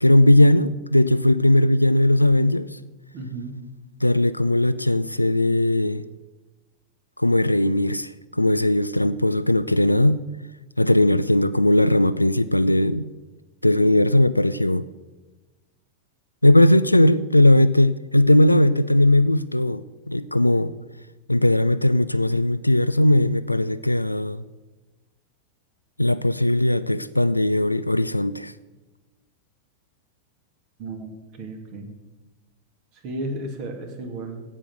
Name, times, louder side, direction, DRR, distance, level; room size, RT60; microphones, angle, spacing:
voice 1, 0.0-2.7 4.0-6.0 7.2-10.2 10.8-13.1 13.6-14.8 16.4-20.7 21.3-24.4 26.0-28.5, left 1 dB, 85° left, 0.3 m, -18 dB
voice 2, 3.1-3.6 30.8-31.9 33.0-34.4, right 2 dB, 40° right, 2.5 m, -33 dB
16.5 x 6.1 x 8.0 m
figure-of-eight pair, 90°, 0 cm